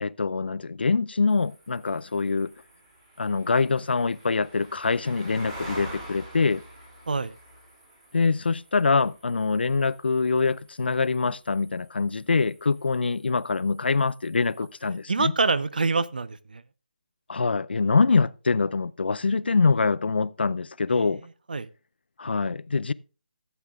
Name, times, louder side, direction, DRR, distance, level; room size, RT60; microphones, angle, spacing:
voice 1, 0.0-2.5 3.2-6.6 8.1-15.3 17.3-21.2 22.2-22.9, left 4 dB, 85° left, 0.4 m, -24 dB
sound 1, 1.3-15.0, right 1 dB, 20° right, 2.2 m, -47 dB
voice 2, 15.1-16.6 20.9-21.1 21.5-21.7, right 4 dB, 60° right, 0.6 m, -26 dB
15.5 x 8.1 x 2.4 m
hypercardioid pair, 175°, 5 cm